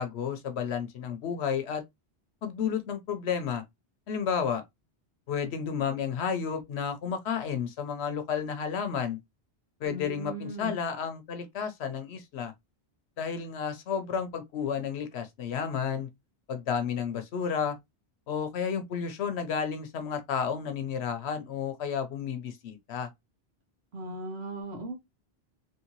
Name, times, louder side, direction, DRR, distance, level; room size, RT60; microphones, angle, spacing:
voice 1, 0.0-1.8 2.4-3.6 4.1-4.6 5.3-9.2 9.8-12.5 13.2-16.1 16.5-17.8 18.3-23.1, left 7 dB, 85° left, 1.0 m, -31 dB
voice 2, 9.8-10.7 23.9-25.1, right 1 dB, 85° right, 1.3 m, -38 dB
3.1 x 2.7 x 2.9 m
omnidirectional pair, 1.1 m